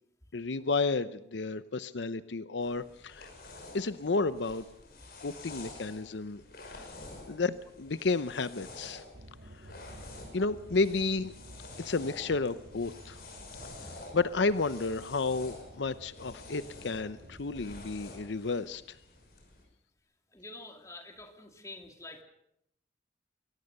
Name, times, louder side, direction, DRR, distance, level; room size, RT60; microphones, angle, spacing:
voice 1, 0.3-3.3 3.7-4.6 5.2-6.4 6.7-6.9 7.3-9.0 10.3-11.3 11.8-13.2 14.1-18.8, left 3 dB, 80° left, 14 dB, 0.7 m, -31 dB
sound 1, 2.6-19.6, left 2 dB, 55° left, 5.7 m, -49 dB
sound 2, 9.1-18.0, right 1 dB, 75° right, 1.8 m, -52 dB
voice 2, 20.3-22.2, left 2 dB, 15° left, 4 dB, 2.3 m, -47 dB
24.0 x 17.5 x 6.6 m, 0.78 s
head